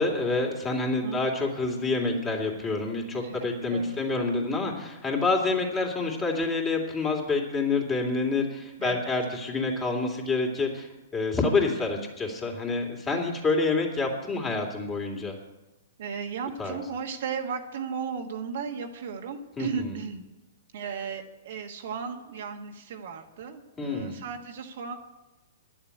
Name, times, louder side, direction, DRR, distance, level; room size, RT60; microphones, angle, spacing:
voice 1, 0.0-15.3 16.6-16.8 19.6-20.0 23.8-24.2, left 3 dB, 20° left, 1 dB, 3.0 m, -27 dB
voice 2, 3.2-4.0 8.8-9.1 12.0-12.1 13.1-13.4 16.0-20.2 20.7-24.9, right 6 dB, 60° right, 4 dB, 1.4 m, -35 dB
11.5 x 7.3 x 9.8 m, 1.0 s
hypercardioid pair, 115°, 0 cm